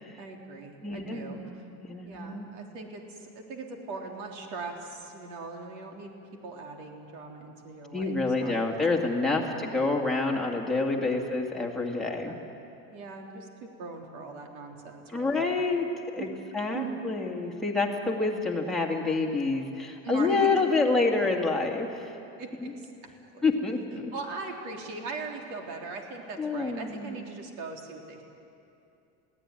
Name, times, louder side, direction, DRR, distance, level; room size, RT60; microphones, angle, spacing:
voice 1, 0.2-1.7 2.0-6.1 6.4-8.6 9.6-9.8 11.1-11.3 12.0-12.4 12.9-15.4 16.2-16.3 16.7-17.0 20.0-20.6 22.4-22.9 23.3-23.5 24.1-28.2, right 4 dB, 65° right, 1 dB, 3.6 m, -40 dB
voice 2, 0.8-1.6 1.8-2.5 7.9-12.4 15.1-15.9 16.1-16.3 16.5-22.1 22.6-22.7 23.4-24.1 26.4-27.2, left 3 dB, ahead, -2 dB, 2.1 m, -28 dB
22.5 x 16.5 x 9.8 m, 2.7 s
cardioid pair, 165°, 38 cm